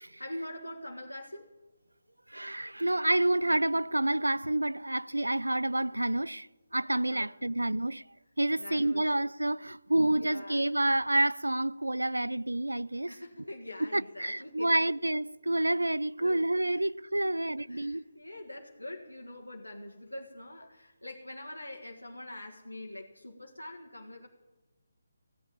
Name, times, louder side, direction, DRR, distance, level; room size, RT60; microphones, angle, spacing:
voice 1, 0.2-1.5 7.1-7.3 8.6-9.1 10.1-10.7 13.1-14.8 16.2-16.4 16.7-16.8 17.2-17.4 17.7-24.3, left 1 dB, 90° left, 1.5 m, -44 dB
voice 2, 2.3-6.5 6.7-8.0 8.4-13.1 13.8-18.0, right 1 dB, 85° right, 0.4 m, -28 dB
15.5 x 8.3 x 8.7 m
figure-of-eight pair, 150°, 0 cm